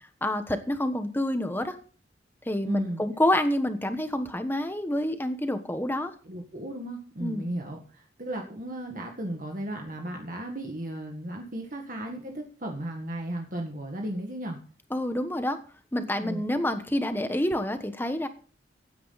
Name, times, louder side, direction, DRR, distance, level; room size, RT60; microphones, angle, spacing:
voice 1, 0.2-1.8 2.5-6.1 7.2-7.5 14.9-15.6 15.9-18.3, left 1 dB, 10° left, 8 dB, 1.2 m, -28 dB
voice 2, 2.6-3.0 6.3-14.6 16.2-16.4, right 1 dB, 45° right, 2 dB, 1.8 m, -35 dB
16.5 x 9.4 x 4.1 m, 0.41 s
head